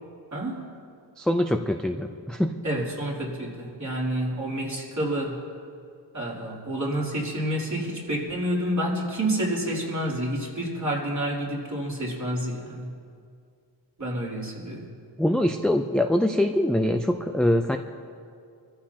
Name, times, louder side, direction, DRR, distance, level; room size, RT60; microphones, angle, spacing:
voice 1, 0.3-0.6 2.6-5.4 6.1-12.9 14.0-14.9, right 1 dB, 40° right, -5 dB, 3.3 m, -29 dB
voice 2, 1.2-2.6 15.2-17.8, left 1 dB, ahead, 5 dB, 0.4 m, -23 dB
25.5 x 14.0 x 2.9 m, 2.4 s
wide cardioid pair, 135°, 45 cm